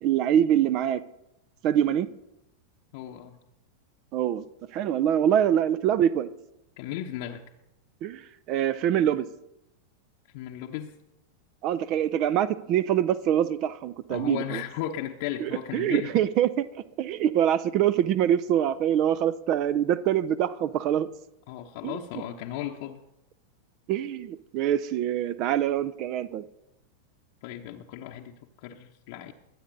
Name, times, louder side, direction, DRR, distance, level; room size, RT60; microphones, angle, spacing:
voice 1, 0.0-1.0 1.6-2.1 4.1-4.4 4.7-6.3 8.0-8.2 8.5-9.3 11.6-14.6 15.4-16.5 17.0-21.1 21.8-22.0 23.9-26.4, right 10 dB, 40° right, 0.5 m, -24 dB
voice 2, 2.9-3.4 6.8-7.4 10.3-10.9 14.1-16.3 21.5-23.0 27.4-29.3, left 11 dB, 50° left, 0.9 m, -36 dB
22.0 x 8.4 x 4.0 m
figure-of-eight pair, 90°, 0 cm